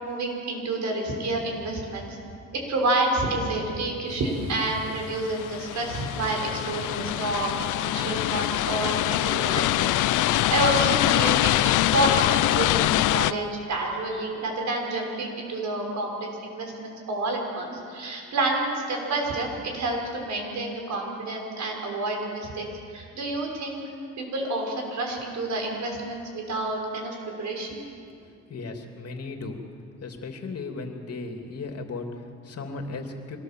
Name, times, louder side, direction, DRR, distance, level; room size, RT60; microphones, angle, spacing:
voice 1, 0.0-2.2 2.5-9.9 10.1-22.6 22.9-23.8 24.2-27.8, right 2 dB, 70° right, 1 dB, 6.1 m, -29 dB
sound 1, 4.9-13.3, left 15 dB, 85° left, 0.6 m, -24 dB
voice 2, 28.2-29.6 30.0-33.4, left 3 dB, 55° left, 4 dB, 3.0 m, -36 dB
25.5 x 18.5 x 7.7 m, 2.4 s
cardioid pair, 90°, 30 cm